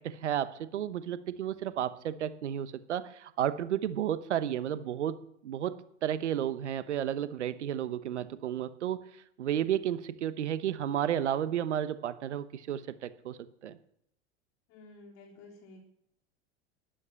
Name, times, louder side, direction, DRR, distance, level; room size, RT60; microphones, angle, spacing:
voice 1, 0.0-9.0 9.4-13.8, right 10 dB, 80° right, 13 dB, 1.0 m, -32 dB
voice 2, 14.7-15.8, left 2 dB, 55° left, 1 dB, 3.8 m, -52 dB
12.5 x 11.5 x 7.7 m, 0.73 s
hypercardioid pair, 90°, 34 cm